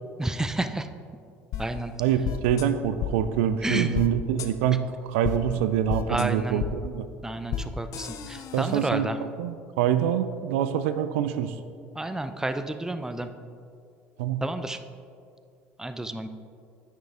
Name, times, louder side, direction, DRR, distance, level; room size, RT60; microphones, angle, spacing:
voice 1, 0.2-0.9 1.6-1.9 3.6-3.9 6.1-6.7 7.2-9.2 12.0-13.3 14.4-14.8 15.8-16.3, right 2 dB, 10° right, 9 dB, 0.5 m, -30 dB
sound 1, 1.5-1.6 2.2-2.6 3.0-3.1 3.9-4.1 4.4-4.5 5.2-5.4 5.9-6.2 6.6-6.7 7.5-7.6 7.9-8.9, left 9 dB, 50° left, 0.6 m, -31 dB
voice 2, 2.0-7.1 8.5-11.5 14.2-14.4, right 9 dB, 70° right, 11 dB, 0.4 m, -25 dB
9.3 x 6.4 x 3.5 m, 2.3 s
hypercardioid pair, 60°, 7 cm